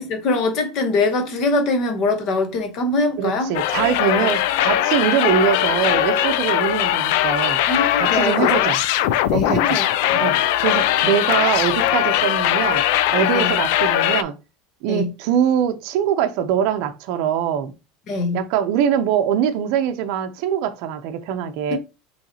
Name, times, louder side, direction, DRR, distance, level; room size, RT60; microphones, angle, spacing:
voice 1, 0.0-3.5 4.2-4.3 7.7-8.7 9.3-9.8 13.3-13.5 14.9-15.1 18.1-18.4 21.7-21.8, left 3 dB, 40° left, 1.0 m, -23 dB
voice 2, 3.2-7.6 8.0-8.8 9.3-9.6 10.2-12.8 13.1-14.3 14.8-17.7 18.3-21.8, right 9 dB, 55° right, 0.6 m, -22 dB
sound 1, 3.5-14.2, left 12 dB, 65° left, 0.4 m, -20 dB
5.6 x 3.2 x 2.8 m
cardioid pair, 165°, 0 cm